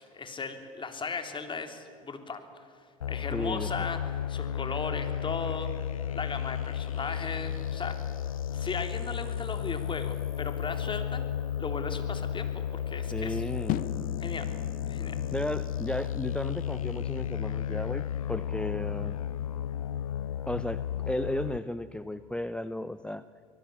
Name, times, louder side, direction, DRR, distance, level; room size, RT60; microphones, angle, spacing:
voice 1, 0.0-2.4 3.1-4.0 4.3-5.7 6.1-11.2 11.6-13.4 14.2-14.5 14.9-15.2, left 4 dB, 30° left, 6 dB, 3.4 m, -37 dB
sound 1, 3.0-21.6, left 9 dB, 85° left, 0.5 m, -33 dB
voice 2, 3.3-3.9 13.1-13.8 15.3-19.2 20.5-23.2, left 1 dB, 5° left, 13 dB, 0.7 m, -34 dB
sound 2, 13.7-19.9, left 13 dB, 55° left, 0.9 m, -41 dB
25.0 x 19.0 x 8.7 m, 2.2 s
hypercardioid pair, 65°, 17 cm